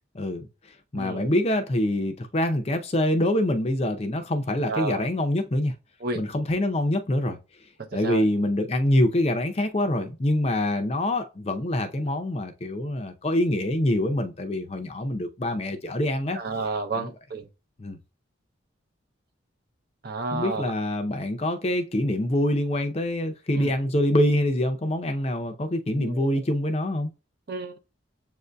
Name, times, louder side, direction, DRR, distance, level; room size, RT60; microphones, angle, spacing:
voice 1, 0.1-0.5 0.9-5.7 6.1-7.4 7.9-16.4 16.9-17.1 17.8-18.0 20.3-27.1, left 1 dB, 30° left, 0.5 m, -25 dB
voice 2, 1.0-1.3 4.7-5.1 6.0-6.2 8.0-8.2 16.3-17.5 20.0-20.7 23.6-23.7 26.0-26.4 27.5-27.8, right 3 dB, 50° right, 0.6 m, -31 dB
7.2 x 2.6 x 2.2 m
head